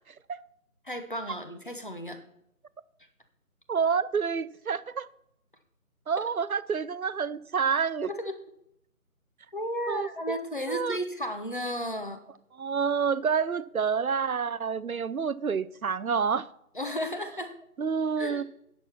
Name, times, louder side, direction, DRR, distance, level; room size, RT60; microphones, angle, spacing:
voice 1, 0.8-2.2 6.2-6.3 8.1-8.3 9.5-12.2 16.7-17.5 18.2-18.4, equal, 35° left, 1.0 m, -34 dB
voice 2, 3.7-5.1 6.1-8.1 9.9-10.4 10.7-11.0 12.6-16.5 17.8-18.4, right 6 dB, 70° right, 0.6 m, -28 dB
10.0 x 6.7 x 5.9 m
figure-of-eight pair, 165°, 44 cm